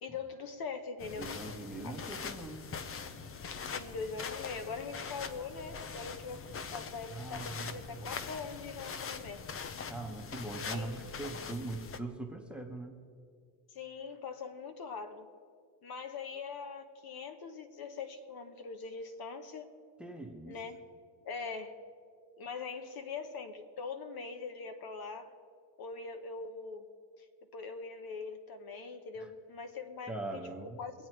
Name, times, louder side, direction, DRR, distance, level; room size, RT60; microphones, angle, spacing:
voice 1, 0.0-1.3 1.8-1.9 3.6-9.4 10.7-11.0 13.7-15.3 15.8-19.7 20.5-20.8 21.2-21.8 22.4-25.3 25.8-26.9 27.5-30.4 30.8-30.9, left 5 dB, 45° left, 8 dB, 1.2 m, -42 dB
sound 1, 1.0-12.0, left 5 dB, 30° left, 0.7 m, -42 dB
voice 2, 1.2-2.7 7.1-8.2 9.9-13.0 20.0-20.6 29.2-29.3 30.1-30.8, right 2 dB, ahead, 5 dB, 1.2 m, -41 dB
24.0 x 8.6 x 4.6 m, 2.1 s
cardioid pair, 125°, 49 cm